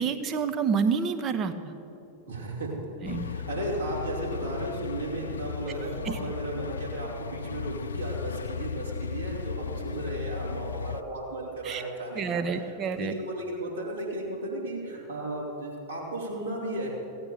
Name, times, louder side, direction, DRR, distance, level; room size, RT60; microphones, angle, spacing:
voice 1, 0.0-1.7 3.0-3.3 6.0-6.2 11.6-11.8 12.1-13.1, right 6 dB, 30° right, 8 dB, 0.9 m, -28 dB
voice 2, 2.3-2.7 3.1-16.9, right 1 dB, 75° right, -5 dB, 3.5 m, -35 dB
sound 1, 3.0-11.0, left 6 dB, 70° left, 0.3 m, -36 dB
16.0 x 8.8 x 6.8 m, 2.8 s
figure-of-eight pair, 90°, 0 cm